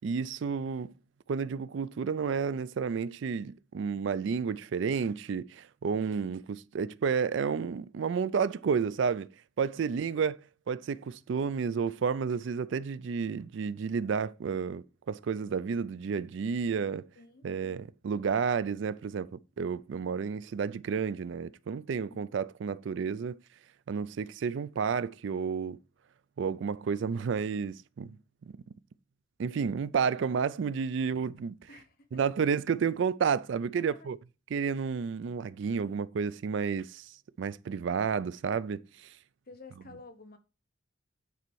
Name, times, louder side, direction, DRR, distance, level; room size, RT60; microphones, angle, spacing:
voice 1, 0.0-0.9 1.3-9.3 9.6-10.4 10.7-17.1 17.4-23.4 23.9-25.8 26.4-28.2 28.5-28.6 29.4-31.5 32.1-34.2 34.5-39.1, right 6 dB, 65° right, 0.3 m, -31 dB
voice 2, 9.8-10.3 17.2-17.9 21.9-22.3 31.7-32.3 33.7-34.1 34.8-34.9 39.5-40.4, left 3 dB, 45° left, 0.9 m, -53 dB
9.2 x 4.2 x 4.6 m
head